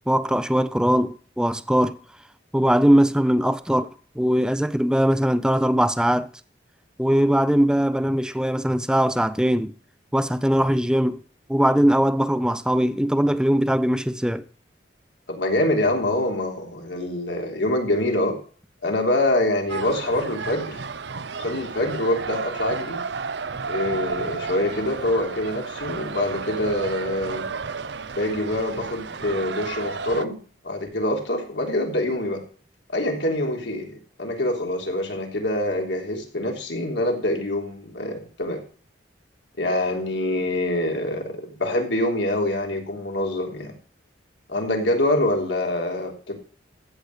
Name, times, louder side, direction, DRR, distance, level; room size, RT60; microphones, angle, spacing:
voice 1, 0.1-2.0 2.5-6.3 7.0-9.7 10.1-11.2 11.5-14.4, equal, 5° right, 0.6 m, -21 dB
voice 2, 15.3-18.4 18.8-20.8 21.4-23.0 23.7-27.5 28.2-30.4 30.6-32.4 32.9-38.6 39.6-43.7 44.5-46.4, left 1 dB, 75° left, 3.5 m, -25 dB
sound 1, 19.7-30.3, right 4 dB, 70° right, 0.7 m, -32 dB
14.5 x 8.3 x 4.9 m
head